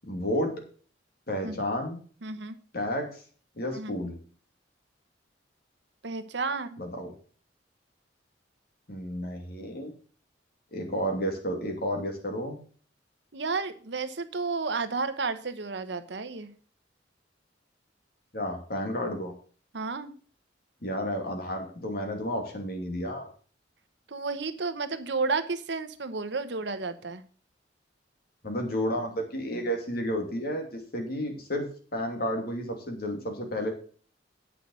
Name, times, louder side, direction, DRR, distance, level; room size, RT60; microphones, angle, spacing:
voice 1, 0.1-0.5 1.3-2.0 2.7-3.2 3.6-4.1 6.8-7.1 8.9-9.9 10.7-12.6 18.3-19.3 20.8-23.3 28.4-31.7 31.9-33.7, equal, 55° left, 3 dB, 2.7 m, -31 dB
voice 2, 2.2-2.6 3.7-3.9 6.0-6.8 13.3-16.5 19.7-20.1 24.1-27.2, right 4 dB, 70° right, 10 dB, 1.0 m, -32 dB
9.1 x 6.2 x 6.5 m, 0.42 s
head